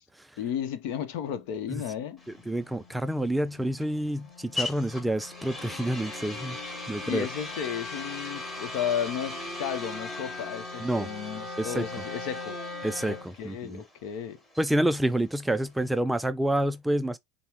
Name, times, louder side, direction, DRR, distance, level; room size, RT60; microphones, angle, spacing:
voice 1, 0.4-2.2 7.0-12.6 13.1-14.4, left 9 dB, 65° left, 0.8 m, -33 dB
Wind instrument woodwind instrument, 1.7-13.3, left 3 dB, 35° left, 2.4 m, -43 dB
sound 1, 2.2-16.0, left 2 dB, 15° left, 1.8 m, -40 dB
voice 2, 2.5-6.6 6.9-7.3 10.8-11.1 11.6-11.9 12.8-13.8 14.6-17.2, right 1 dB, 5° right, 0.3 m, -28 dB
5.4 x 2.1 x 3.0 m
supercardioid pair, 125°, 0 cm